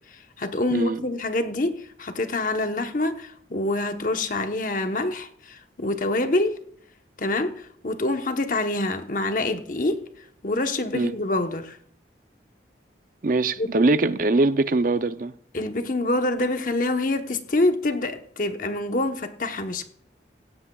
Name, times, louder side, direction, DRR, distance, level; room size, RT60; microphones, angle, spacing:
voice 1, 0.1-6.5 7.2-10.0 10.4-11.8 13.6-13.7 15.5-19.9, left 2 dB, 45° left, 1.0 m, -26 dB
voice 2, 0.7-1.0 10.9-11.1 13.2-15.3, right 2 dB, 50° right, 0.5 m, -22 dB
17.0 x 16.0 x 2.3 m
head